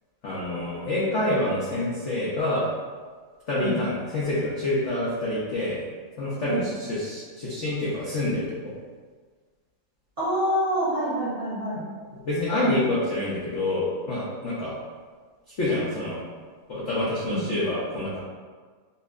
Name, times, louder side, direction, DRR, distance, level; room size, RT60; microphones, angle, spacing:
voice 1, 0.2-2.7 3.5-5.8 6.2-8.7 12.2-14.7 15.6-16.2 16.7-18.2, left 1 dB, 80° left, -8 dB, 0.6 m, -27 dB
voice 2, 10.2-11.8 17.2-17.4, equal, 45° right, -10 dB, 0.8 m, -26 dB
5.3 x 2.1 x 2.4 m, 1.5 s
omnidirectional pair, 2.2 m